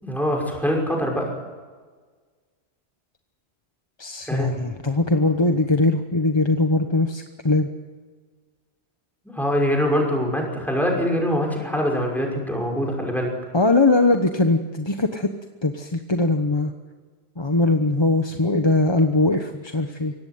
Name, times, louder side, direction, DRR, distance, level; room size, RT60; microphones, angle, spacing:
voice 1, 0.0-1.3 4.3-4.5 9.2-13.3, equal, ahead, 0 dB, 5.7 m, -23 dB
voice 2, 4.0-7.7 13.5-15.3 15.6-16.7 17.4-20.1, left 2 dB, 25° left, 5 dB, 1.1 m, -21 dB
24.0 x 18.0 x 9.5 m, 1.5 s
omnidirectional pair, 1.1 m